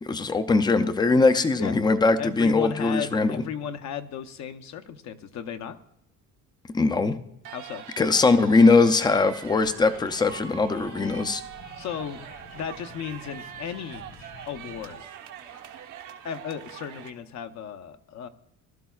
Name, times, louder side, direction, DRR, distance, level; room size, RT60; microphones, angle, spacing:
voice 1, 0.0-3.4 6.7-7.2 8.0-11.4, left 3 dB, 15° left, 10 dB, 0.4 m, -21 dB
voice 2, 2.2-5.8 7.5-7.9 11.8-12.2 12.5-14.1 14.5-15.0 16.2-18.3, left 8 dB, 60° left, 7 dB, 0.8 m, -35 dB
sound 1, 7.4-17.1, right 9 dB, 75° right, 1.1 m, -43 dB
sound 2, 9.5-15.0, left 4 dB, 85° left, 4.9 m, -49 dB
19.0 x 12.5 x 2.4 m, 0.81 s
cardioid pair, 175°, 32 cm